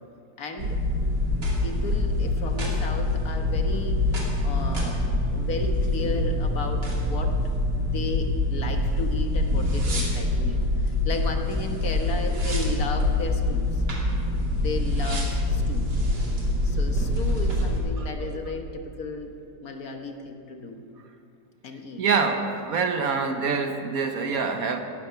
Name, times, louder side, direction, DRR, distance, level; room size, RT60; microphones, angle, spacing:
voice 1, 0.4-0.8 1.4-7.4 7.8-13.8 14.6-15.9 16.6-19.3 19.6-20.8 21.6-22.0, left 3 dB, 60° left, 4 dB, 1.7 m, -34 dB
sound 1, 0.6-17.8, left 1 dB, 85° right, 3.1 m, -25 dB
voice 2, 22.0-24.8, right 5 dB, 60° right, 6 dB, 1.4 m, -25 dB
17.0 x 12.5 x 5.7 m, 2.5 s
omnidirectional pair, 1.8 m